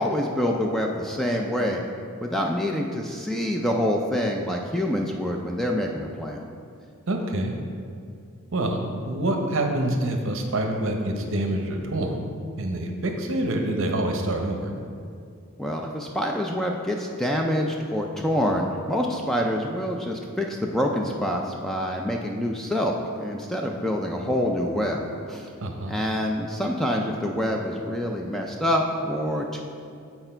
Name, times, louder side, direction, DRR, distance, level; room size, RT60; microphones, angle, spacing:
voice 1, 0.0-1.8 2.2-6.5 15.6-25.0 25.3-25.5 25.9-29.6, equal, ahead, 0 dB, 0.3 m, -26 dB
voice 2, 7.1-7.5 8.5-12.3 12.6-14.7 25.6-25.9, right 1 dB, 60° right, 3 dB, 0.8 m, -26 dB
8.0 x 4.4 x 4.4 m, 2.3 s
head